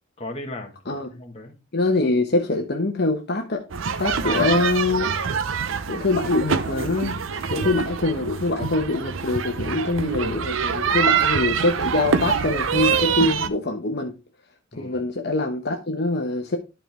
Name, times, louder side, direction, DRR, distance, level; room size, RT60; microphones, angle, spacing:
voice 1, 0.2-1.6 4.1-4.8 10.8-11.1 14.7-15.1, left 2 dB, 35° left, 1.5 m, -37 dB
voice 2, 1.7-3.6 4.0-5.1 5.9-14.1 14.8-16.6, left 2 dB, 55° left, 1.1 m, -24 dB
sound 1, 3.7-13.5, right 6 dB, 90° right, 0.7 m, -25 dB
12.0 x 4.5 x 3.4 m
head